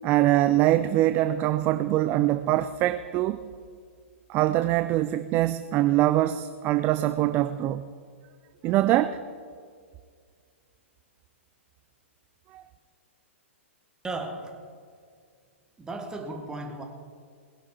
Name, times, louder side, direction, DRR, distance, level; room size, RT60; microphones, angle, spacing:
voice 1, 0.0-3.4 4.3-7.9 8.6-9.2 12.5-12.6, right 14 dB, 30° right, 12 dB, 0.4 m, -23 dB
voice 2, 14.0-14.6 15.8-16.8, right 2 dB, 10° right, 4 dB, 1.7 m, -35 dB
20.0 x 11.0 x 4.5 m, 2.1 s
figure-of-eight pair, 110°, 7 cm